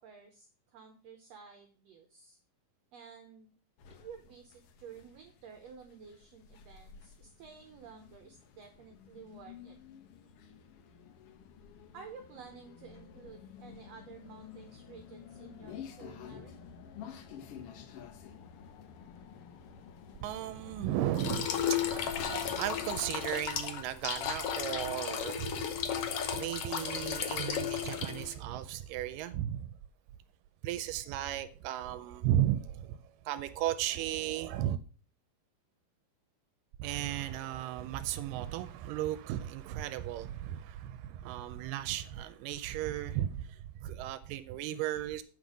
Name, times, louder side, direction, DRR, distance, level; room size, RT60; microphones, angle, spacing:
voice 1, 0.0-2.4 2.9-3.5 4.0-9.8 11.9-16.6, right 6 dB, 70° right, 1.7 m, -52 dB
sound 1, 3.8-23.3, left 7 dB, 85° left, 1.3 m, -51 dB
voice 2, 20.2-29.7 30.6-34.8 36.8-45.2, right 12 dB, 85° right, 2.1 m, -35 dB
sound 2, 21.1-28.3, left 8 dB, 70° left, 1.5 m, -34 dB
8.1 x 5.3 x 6.1 m
omnidirectional pair, 3.8 m